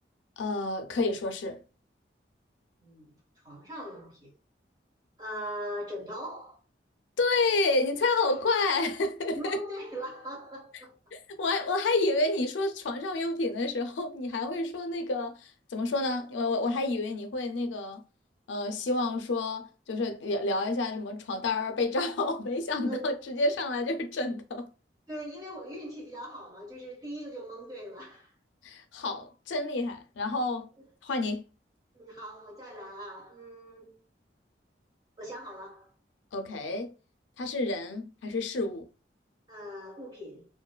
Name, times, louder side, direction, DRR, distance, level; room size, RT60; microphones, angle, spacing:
voice 1, 0.4-1.6 7.2-9.6 11.1-18.0 18.5-24.7 28.6-30.7 31.0-31.4 36.3-36.9 37.4-38.8, left 2 dB, 85° left, 0.4 m, -29 dB
voice 2, 2.8-3.2 3.4-4.3 5.2-6.6 8.5-8.6 9.3-11.0 22.9-23.2 25.1-28.3 30.8-30.9 31.9-33.9 35.2-35.9 39.5-40.5, equal, 20° right, 1.1 m, -40 dB
2.5 x 2.3 x 2.2 m
head